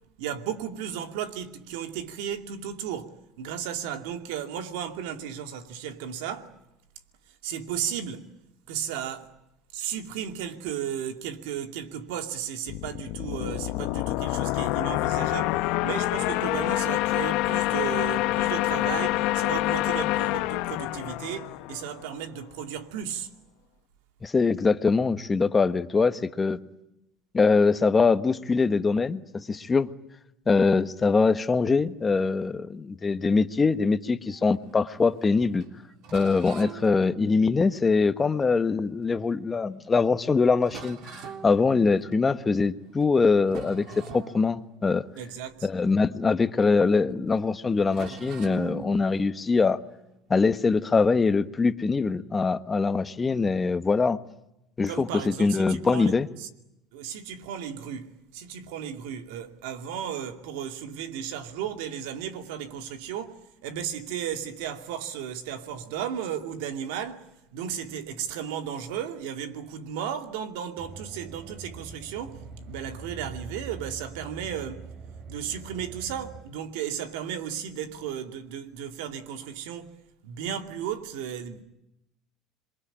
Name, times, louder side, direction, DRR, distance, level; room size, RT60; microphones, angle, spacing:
voice 1, 0.2-6.5 7.4-8.3 8.7-9.3 9.7-23.3 45.2-45.7 54.9-56.5 56.9-74.8 75.3-80.0 80.2-81.6, right 9 dB, 85° right, 2.5 m, -35 dB
sound 1, 12.7-22.2, left 18 dB, 75° left, 1.1 m, -27 dB
voice 2, 24.2-26.6 27.3-29.9 30.5-35.7 36.1-45.0 45.6-49.8 50.3-54.2 54.8-56.3, left 4 dB, 20° left, 1.3 m, -23 dB
sound 2, 34.3-39.3 39.8-40.0 40.2-40.3 40.6-42.5 42.9-43.2 43.4-46.8 47.1-47.2 47.9-50.9, right 6 dB, 65° right, 3.4 m, -45 dB
sound 3, 70.8-76.4, right 5 dB, 45° right, 6.6 m, -43 dB
27.0 x 23.0 x 8.9 m
supercardioid pair, 115°, 0 cm